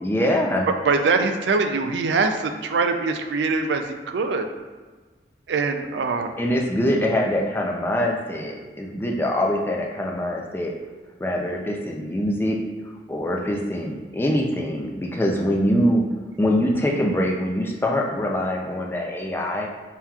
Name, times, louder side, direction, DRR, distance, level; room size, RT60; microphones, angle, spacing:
voice 1, 0.0-0.7 6.4-10.7 11.2-12.6 13.1-16.0 16.4-19.7, equal, 15° left, 0 dB, 0.4 m, -23 dB
voice 2, 0.9-4.5 5.5-6.3, right 4 dB, 85° right, 6 dB, 0.4 m, -23 dB
5.5 x 2.9 x 2.3 m, 1.4 s
head